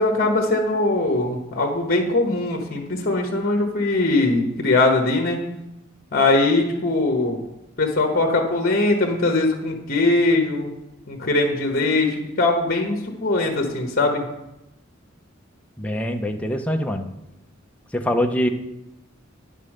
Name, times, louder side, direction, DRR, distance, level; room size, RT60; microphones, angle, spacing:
voice 1, 0.0-5.4 6.1-7.4 7.8-10.7 11.1-14.2, left 2 dB, 50° left, 3 dB, 1.2 m, -21 dB
voice 2, 15.8-17.1 17.9-18.5, equal, 5° left, 4 dB, 0.7 m, -23 dB
9.6 x 5.4 x 6.4 m, 0.90 s
head